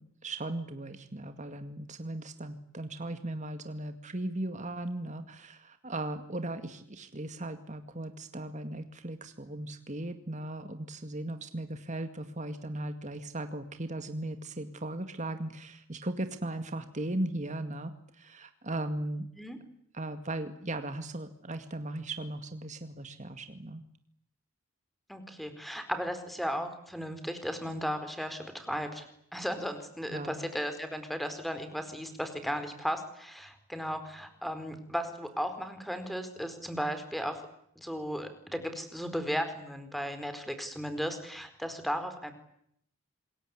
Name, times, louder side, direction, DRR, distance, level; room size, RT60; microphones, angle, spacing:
voice 1, 0.0-19.3 19.9-23.8 30.1-30.4, right 1 dB, 35° right, 8 dB, 2.1 m, -37 dB
voice 2, 25.1-29.1 29.3-37.4 37.8-42.3, equal, ahead, 9 dB, 4.4 m, -35 dB
27.0 x 22.0 x 9.7 m, 0.71 s
head